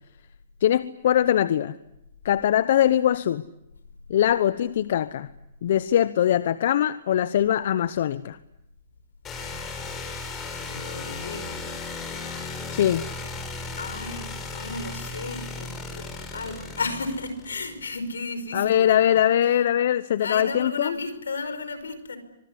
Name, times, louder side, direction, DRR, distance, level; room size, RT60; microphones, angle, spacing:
voice 1, 0.6-1.7 2.2-3.4 4.1-5.3 5.6-8.4 12.7-13.0 18.5-21.0, left 11 dB, 65° left, 15 dB, 0.9 m, -22 dB
sound 1, 9.2-18.0, left 3 dB, 25° left, 6.1 m, -36 dB
voice 2, 10.7-11.7 13.8-16.0 16.3-19.2 20.2-22.2, left 3 dB, 90° left, 11 dB, 5.3 m, -33 dB
25.0 x 21.0 x 9.7 m, 0.84 s
hypercardioid pair, 130°, 0 cm